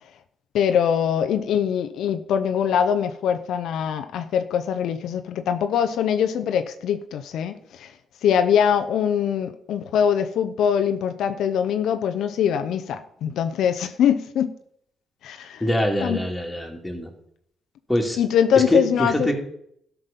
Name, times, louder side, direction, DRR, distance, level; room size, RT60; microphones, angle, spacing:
voice 1, 0.5-7.9 8.2-14.5 15.2-15.6 16.0-16.2 18.2-19.3, left 8 dB, 75° left, 9 dB, 0.7 m, -23 dB
voice 2, 15.6-17.1 17.9-18.2 18.7-19.3, left 1 dB, 5° left, 1 dB, 2.6 m, -24 dB
13.0 x 6.0 x 5.3 m, 0.70 s
cardioid pair, 90°, 0 cm